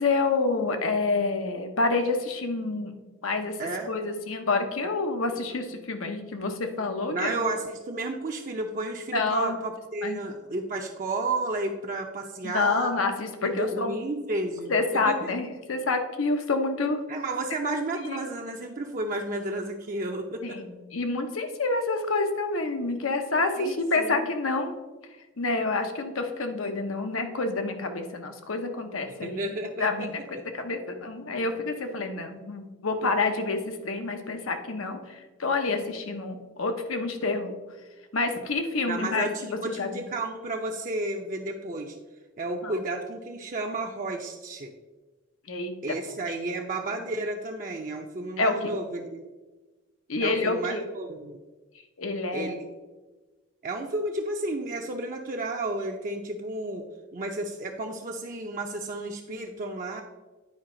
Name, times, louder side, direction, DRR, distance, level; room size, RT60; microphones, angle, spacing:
voice 1, 0.0-2.9 3.2-7.4 9.1-9.6 10.0-10.2 12.4-13.9 14.7-17.0 18.0-18.2 20.4-24.7 25.4-37.6 38.1-40.0 42.6-42.8 45.5-45.8 48.4-48.7 50.1-50.8 52.0-52.5, left 3 dB, 85° left, 6 dB, 0.9 m, -28 dB
voice 2, 3.6-3.9 7.1-12.9 13.4-14.7 15.1-15.3 17.1-20.6 23.6-24.3 29.2-30.1 38.9-42.0 42.4-44.7 45.8-49.2 50.2-51.4 52.3-52.7 53.6-56.8 57.1-60.0, right 2 dB, 40° right, 2 dB, 0.5 m, -32 dB
9.6 x 4.8 x 3.8 m, 1.2 s
head